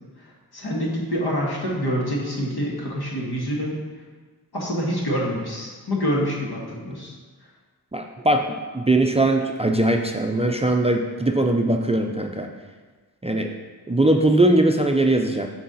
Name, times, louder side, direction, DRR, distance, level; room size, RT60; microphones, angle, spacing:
voice 1, 0.5-3.8 4.5-7.1, equal, 70° left, -3 dB, 1.5 m, -26 dB
voice 2, 7.9-8.4 8.7-12.5 13.2-13.6 13.9-15.5, right 1 dB, 15° right, 3 dB, 0.4 m, -20 dB
6.2 x 4.7 x 4.0 m, 1.4 s
wide cardioid pair, 60°, 40 cm